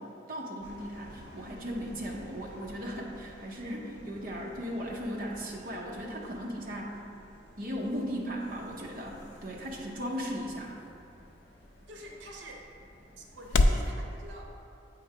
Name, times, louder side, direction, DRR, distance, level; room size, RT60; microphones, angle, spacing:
voice 1, 0.0-7.0 7.6-10.8, equal, 50° right, -3 dB, 0.7 m, -37 dB
sound 1, 0.6-14.0, equal, 60° left, 1.2 m, -53 dB
sound 2, 7.6-13.9, left 2 dB, 80° left, 0.4 m, -34 dB
voice 2, 11.9-12.7 13.2-14.7, right 1 dB, 85° right, 0 dB, 0.8 m, -47 dB
7.9 x 3.1 x 4.7 m, 2.5 s
head